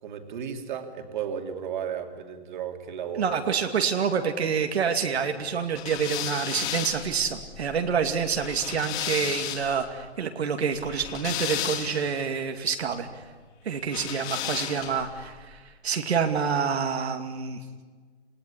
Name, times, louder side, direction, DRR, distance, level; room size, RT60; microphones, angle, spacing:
voice 1, 0.0-3.4, right 8 dB, 45° right, 5 dB, 2.9 m, -34 dB
voice 2, 3.1-13.3 13.6-17.6, right 6 dB, 80° right, 5 dB, 2.5 m, -27 dB
sound 1, 5.7-9.8 10.8-12.2 13.9-15.1, left 10 dB, 20° left, 2.5 m, -33 dB
29.0 x 17.5 x 9.9 m, 1.5 s
hypercardioid pair, 165°, 32 cm